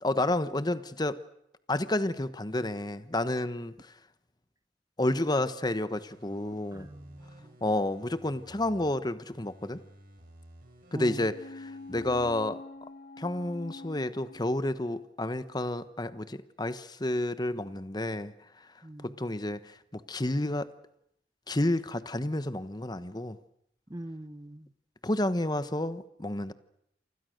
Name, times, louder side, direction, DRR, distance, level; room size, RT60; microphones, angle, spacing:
voice 1, 0.0-1.2 1.7-3.9 5.0-6.9 7.6-9.8 10.9-12.6 13.2-18.7 19.0-20.7 21.5-23.4 25.0-26.5, left 1 dB, 25° left, 13 dB, 1.1 m, -30 dB
sound 1, 5.9-8.9 9.3-12.3 12.7-12.8, right 1 dB, 50° right, 7.8 m, -54 dB
voice 2, 6.7-7.6 10.9-11.3 18.8-19.2 23.9-24.7, right 1 dB, 20° right, 14 dB, 1.0 m, -42 dB
sound 2, 11.3-15.0 15.4-15.5, left 2 dB, 60° left, 3.4 m, -46 dB
29.0 x 25.5 x 6.6 m, 0.76 s
head